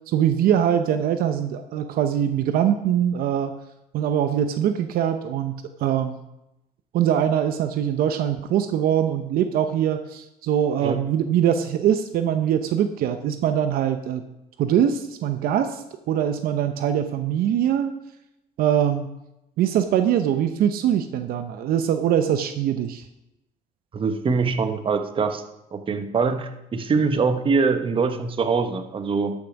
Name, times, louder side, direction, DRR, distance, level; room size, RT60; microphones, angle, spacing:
voice 1, 0.1-3.5 3.9-5.5 5.8-6.2 6.9-14.2 14.6-17.9 18.6-19.1 19.6-23.0, right 9 dB, 65° right, 8 dB, 0.8 m, -22 dB
voice 2, 23.9-25.4 25.7-29.3, right 4 dB, 35° right, 7 dB, 1.1 m, -23 dB
13.0 x 5.9 x 5.3 m, 0.89 s
cardioid pair, 105°, 16 cm